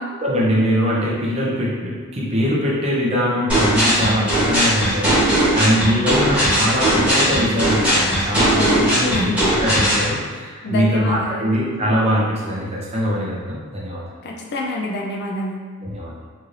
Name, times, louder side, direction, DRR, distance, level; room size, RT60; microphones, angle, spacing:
voice 1, 0.2-9.1 9.6-14.0 15.8-16.1, equal, 25° right, -6 dB, 0.6 m, -22 dB
sound 1, 3.5-10.0, right 1 dB, 5° right, 1.0 m, -18 dB
voice 2, 8.5-9.5 10.6-11.5 14.2-15.6, left 2 dB, 50° left, -1 dB, 0.3 m, -27 dB
3.1 x 2.7 x 2.5 m, 1.5 s
head